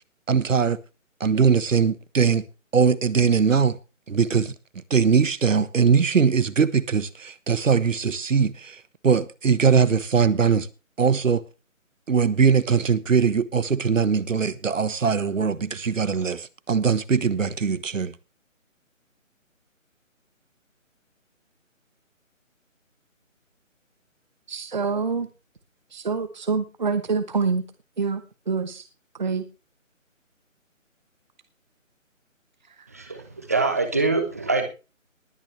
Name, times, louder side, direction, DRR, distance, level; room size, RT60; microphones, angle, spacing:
voice 1, 0.3-0.8 1.2-2.4 2.7-3.8 4.1-4.5 4.9-10.7 11.0-11.4 12.1-18.1, right 6 dB, 70° right, 1.3 m, -21 dB
voice 2, 24.5-25.3 25.9-27.6 28.0-28.2 28.5-28.8 29.2-29.4, right 4 dB, 35° right, 1.1 m, -26 dB
voice 3, 32.9-34.6, right 3 dB, 10° right, 1.0 m, -24 dB
20.0 x 9.4 x 3.3 m
hypercardioid pair, 175°, 40 cm